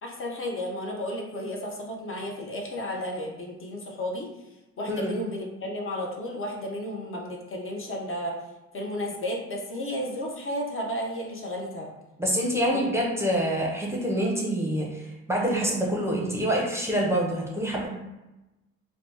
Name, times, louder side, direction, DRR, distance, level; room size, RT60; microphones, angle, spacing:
voice 1, 0.0-4.3 4.8-8.4 8.7-11.9 12.7-12.9, left 1 dB, 45° left, -1 dB, 0.7 m, -33 dB
voice 2, 12.2-17.9, equal, 10° right, -3 dB, 0.6 m, -26 dB
2.8 x 2.0 x 3.3 m, 1.0 s
cardioid pair, 90°, 30 cm